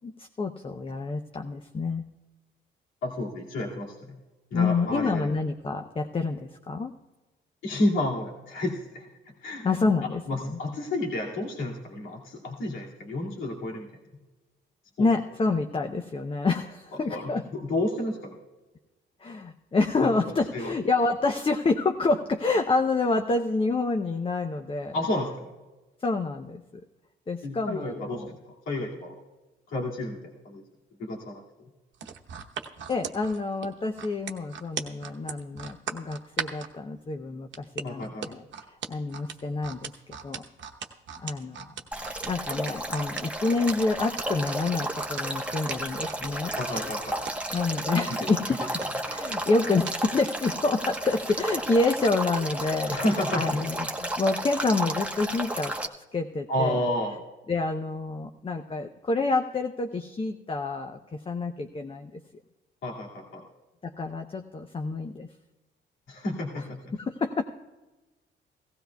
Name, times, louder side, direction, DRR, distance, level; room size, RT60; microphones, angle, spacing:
voice 1, 0.0-2.0 4.5-6.9 9.6-10.6 15.0-17.4 19.2-25.0 26.0-26.8 27.3-28.3 32.9-40.4 41.2-41.7 42.2-46.5 47.5-48.7 49.1-55.7 56.1-56.8 57.5-62.1 63.8-65.3 66.6-66.7 66.9-67.4, left 3 dB, 25° left, 5 dB, 0.7 m, -28 dB
voice 2, 3.0-4.2 4.5-5.3 7.6-9.1 9.4-9.6 10.3-13.9 15.0-15.1 17.1-18.4 20.0-20.1 20.5-20.7 24.9-25.5 27.4-29.2 29.7-30.6 31.0-31.4 37.8-38.3 46.5-47.2 52.9-53.6 56.5-57.1 62.8-63.4 66.1-66.9, left 1 dB, 80° left, -3 dB, 2.3 m, -31 dB
sound 1, 31.9-36.7 37.5-50.3 50.8-50.9, right 8 dB, 70° right, 1.0 m, -38 dB
Male speech man speaking / Stream / Trickle dribble, 41.9-55.9, right 1 dB, 5° right, 1.1 m, -33 dB
16.5 x 15.5 x 2.3 m, 1.1 s
cardioid pair, 90°, 20 cm